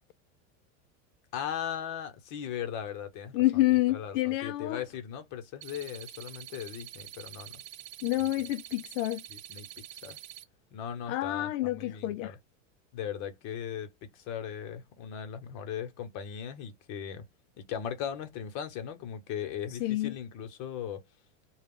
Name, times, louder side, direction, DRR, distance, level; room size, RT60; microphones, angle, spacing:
voice 1, 1.3-3.4 3.9-7.6 9.3-9.7 10.0-10.2 10.7-12.4 12.9-17.3 17.6-21.0, left 8 dB, 45° left, 1.1 m, -38 dB
voice 2, 3.3-4.8 8.0-9.2 11.1-12.3 19.7-20.1, left 17 dB, 65° left, 0.5 m, -28 dB
sound 1, 5.6-10.4, right 13 dB, 75° right, 0.7 m, -46 dB
2.4 x 2.3 x 3.7 m
supercardioid pair, 120°, 40 cm